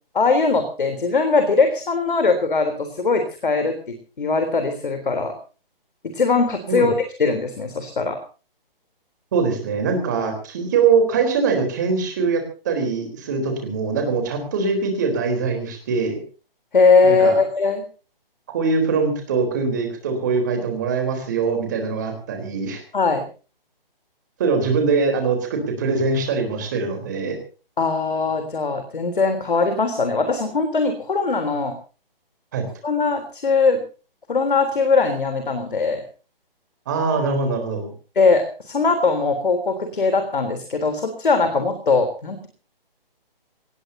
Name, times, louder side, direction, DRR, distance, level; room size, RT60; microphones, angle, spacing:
voice 1, 0.1-5.3 6.1-6.9 7.2-8.2 16.7-17.8 22.9-23.3 27.8-31.7 32.8-33.8 34.3-36.0 38.2-42.5, left 4 dB, 60° left, 8 dB, 3.7 m, -20 dB
voice 2, 9.3-16.2 17.0-17.4 18.5-22.8 24.4-27.4 32.5-32.7 36.9-37.9, right 4 dB, 20° right, 5 dB, 3.9 m, -22 dB
24.0 x 19.0 x 2.8 m, 0.36 s
hypercardioid pair, 180°, 29 cm